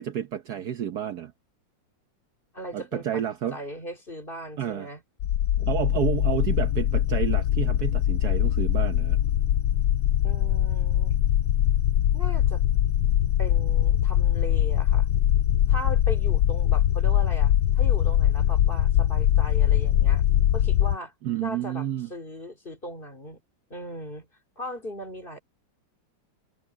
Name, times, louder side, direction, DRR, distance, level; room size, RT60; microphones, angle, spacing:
voice 1, 0.0-1.3 2.7-3.6 4.6-4.9 5.7-9.2 21.2-22.1, right 10 dB, 60° right, 1.3 m, -30 dB
voice 2, 2.5-3.2 3.5-5.0 10.2-11.2 12.1-12.6 13.4-15.1 15.7-20.2 20.5-21.1 21.4-23.4 23.7-24.3 24.6-25.4, equal, 25° left, 3.0 m, -38 dB
sound 1, 5.2-21.0, left 11 dB, 80° left, 1.4 m, -22 dB
omnidirectional pair, 2.1 m